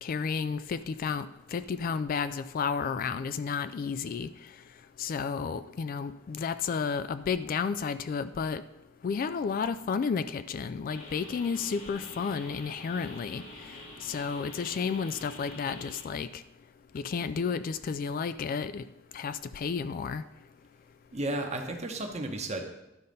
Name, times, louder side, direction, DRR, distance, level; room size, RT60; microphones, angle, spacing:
voice 1, 0.0-4.3 5.0-8.6 9.0-13.4 14.0-16.4 16.9-18.8 19.1-20.2, left 5 dB, 45° left, 13 dB, 0.3 m, -32 dB
sound 1, 10.9-16.0, left 1 dB, 75° left, 2.3 m, -46 dB
voice 2, 21.1-22.6, right 1 dB, 35° right, 4 dB, 1.0 m, -33 dB
11.5 x 4.1 x 5.3 m, 0.93 s
head